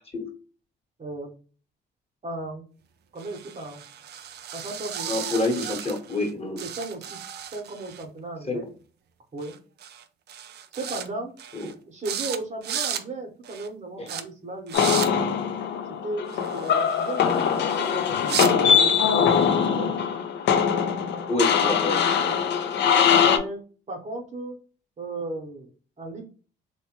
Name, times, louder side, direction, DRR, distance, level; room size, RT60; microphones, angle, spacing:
voice 1, 1.0-1.3 2.2-2.7 3.1-3.8 4.5-5.1 6.6-7.2 7.5-8.7 9.3-9.6 10.7-11.4 11.8-15.4 16.0-19.9 23.1-23.6 23.9-24.6 25.0-25.7 26.0-26.2, right 2 dB, 35° right, 1 dB, 0.9 m, -35 dB
sound 1, 3.2-6.3 6.6-8.0 9.4-9.6 9.8-10.0 10.3-11.1 11.4-11.7 12.0-12.4 12.6-13.0 13.4-13.7 14.1-14.2 14.7-15.1 16.3-18.5, right 9 dB, 55° right, 0.4 m, -34 dB
voice 2, 5.1-6.6 8.5-8.6 11.5-11.7 14.0-14.1 21.3-22.4, left 2 dB, 30° left, 1 dB, 1.1 m, -27 dB
sound 2, 14.7-23.4, left 7 dB, 60° left, 0.4 m, -22 dB
3.0 x 2.2 x 2.9 m, 0.37 s
cardioid pair, 90°, 20 cm